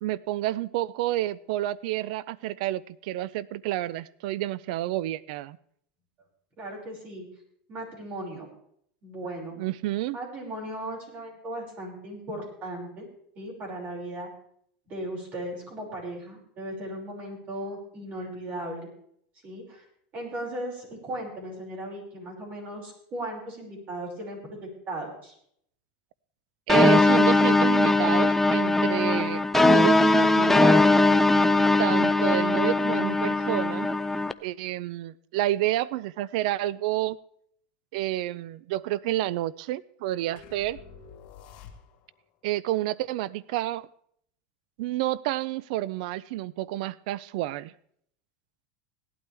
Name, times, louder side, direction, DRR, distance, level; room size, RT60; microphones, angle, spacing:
voice 1, 0.0-5.6 9.6-10.2 26.7-30.9 31.8-33.9 34.4-37.2 37.9-40.8 42.4-43.9 44.8-47.7, right 15 dB, 70° right, 21 dB, 0.4 m, -29 dB
voice 2, 6.6-7.3 7.7-8.5 9.0-9.6 10.1-13.1 13.4-14.3 14.9-18.9 19.4-19.8 20.1-25.3, right 1 dB, 35° right, -1 dB, 5.7 m, -37 dB
sound 1, 26.7-34.3, left 2 dB, 5° left, 0.4 m, -20 dB
sound 2, 40.4-42.2, left 7 dB, 50° left, 2.2 m, -48 dB
17.5 x 12.0 x 3.4 m, 0.67 s
supercardioid pair, 140°, 4 cm